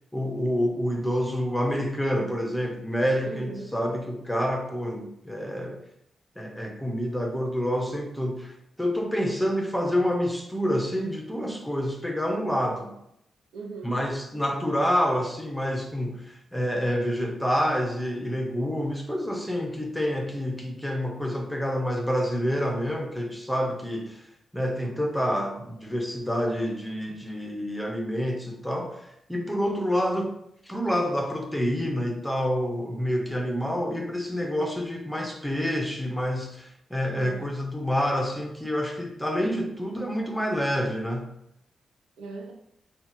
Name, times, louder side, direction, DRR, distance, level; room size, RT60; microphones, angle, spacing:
voice 1, 0.1-5.8 6.4-12.9 13.8-24.2 24.5-30.4 30.7-41.3, equal, 5° left, 2 dB, 0.5 m, -28 dB
voice 2, 3.2-3.8 13.5-14.0 37.1-37.5 42.2-42.5, right 3 dB, 90° right, 1 dB, 0.5 m, -39 dB
2.7 x 2.2 x 3.2 m, 0.75 s
cardioid pair, 60°, 0 cm